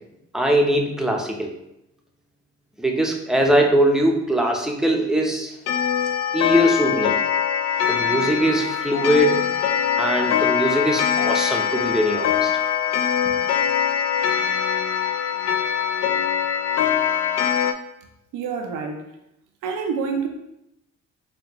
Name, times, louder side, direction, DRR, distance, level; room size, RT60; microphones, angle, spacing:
voice 1, 0.3-1.5 2.8-5.6 6.3-7.2 7.9-9.5 10.0-12.5, equal, ahead, 0.6 m, -21 dB
Clock, 5.7-17.7, left 8 dB, 60° left, 0.5 m, -22 dB
voice 2, 18.0-19.1 19.6-20.3, right 5 dB, 90° right, 0.6 m, -28 dB
5.1 x 2.3 x 2.9 m
cardioid pair, 90°, 30 cm